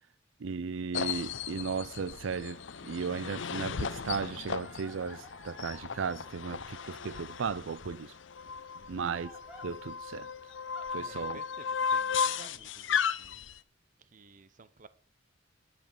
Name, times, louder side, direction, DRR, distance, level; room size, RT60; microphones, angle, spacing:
voice 1, 0.4-8.1 8.9-9.3 9.6-10.3 10.9-11.4, right 5 dB, 80° right, 0.5 m, -36 dB
sound 1, 0.9-13.6, left 6 dB, 70° left, 0.7 m, -36 dB
Crying sobbing, 4.4-5.9 6.6-7.4 8.9-9.7 10.5-10.9 11.9-12.5, equal, 10° right, 3.2 m, -55 dB
voice 2, 8.7-9.1 10.9-13.5 14.0-14.9, right 3 dB, 40° right, 0.8 m, -54 dB
10.5 x 7.7 x 6.8 m
head